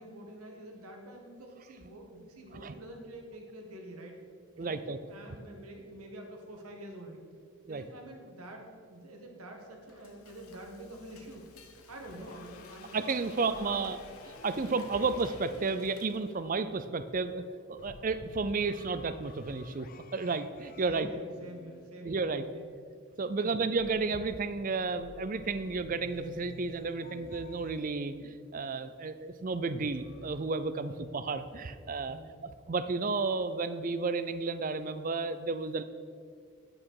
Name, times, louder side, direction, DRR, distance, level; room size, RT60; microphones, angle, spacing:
voice 1, 0.0-4.1 4.6-7.2 7.7-11.4 11.9-13.0 13.2-13.9 20.8-22.3 22.5-22.8 23.4-23.7 30.9-31.2 32.1-32.3, right 1 dB, 85° right, 2 dB, 1.8 m, -47 dB
voice 2, 4.6-5.0 7.7-7.8 12.9-14.0 14.4-17.4 17.7-21.1 22.0-22.5 23.2-32.2 32.4-35.8, right 4 dB, 35° right, 12 dB, 0.5 m, -32 dB
Frying (food), 9.5-16.6, left 4 dB, 80° left, 1.1 m, -55 dB
sound 1, 12.0-16.6 17.8-22.6 23.8-28.4 29.8-30.4, left 4 dB, 40° left, 0.4 m, -53 dB
11.0 x 8.7 x 4.8 m, 2.1 s
head